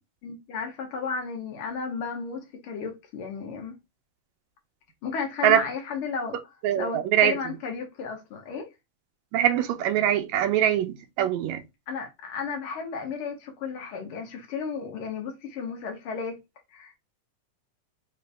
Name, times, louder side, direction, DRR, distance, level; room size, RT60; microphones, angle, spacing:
voice 1, 0.2-3.8 5.0-6.4 6.8-8.7 11.9-16.4 16.7-17.0, left 5 dB, 85° left, 1.2 m, -33 dB
voice 2, 6.6-7.3 9.3-11.6, right 10 dB, 85° right, 1.6 m, -23 dB
5.0 x 2.7 x 3.3 m
omnidirectional pair, 3.9 m